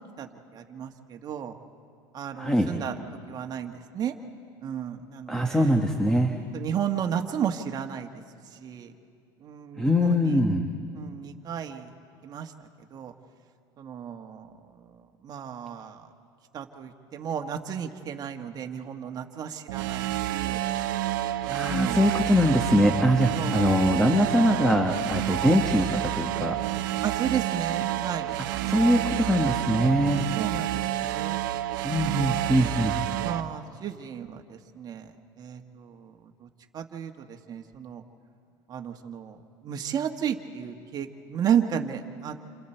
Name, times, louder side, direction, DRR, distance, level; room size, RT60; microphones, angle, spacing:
voice 1, 0.5-1.6 2.1-3.0 3.3-4.2 4.6-5.8 6.5-8.1 8.5-8.9 9.4-10.5 10.9-11.9 12.2-12.5 12.9-13.1 13.8-16.1 16.5-20.6 21.5-22.1 23.3-24.7 27.0-29.2 30.3-31.4 32.0-32.8 33.2-38.0 38.7-39.4 39.6-42.4, right 8 dB, 40° right, 4 dB, 1.6 m, -33 dB
voice 2, 2.4-2.7 5.3-6.3 9.8-10.7 21.5-26.6 28.7-30.2 31.8-32.9, equal, 5° left, 3 dB, 1.5 m, -22 dB
sound 1, 19.7-33.4, right 14 dB, 90° right, 0.7 m, -29 dB
28.5 x 27.0 x 4.5 m, 2.4 s
supercardioid pair, 115°, 11 cm